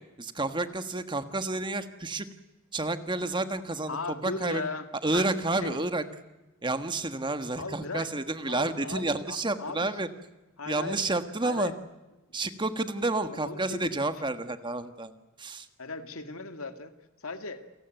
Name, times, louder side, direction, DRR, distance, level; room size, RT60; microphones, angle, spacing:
voice 1, 0.2-2.3 2.7-4.0 4.2-4.7 5.0-6.0 6.6-10.1 10.7-11.7 12.3-15.1 15.4-15.7, right 2 dB, 20° right, 10 dB, 1.4 m, -30 dB
voice 2, 3.9-4.9 5.1-5.3 5.6-5.8 7.6-8.1 8.5-9.9 10.6-11.0 11.4-11.7 13.2-14.1 15.8-16.9 17.2-17.6, left 3 dB, 80° left, 8 dB, 2.1 m, -37 dB
29.0 x 18.0 x 9.1 m, 1.1 s
head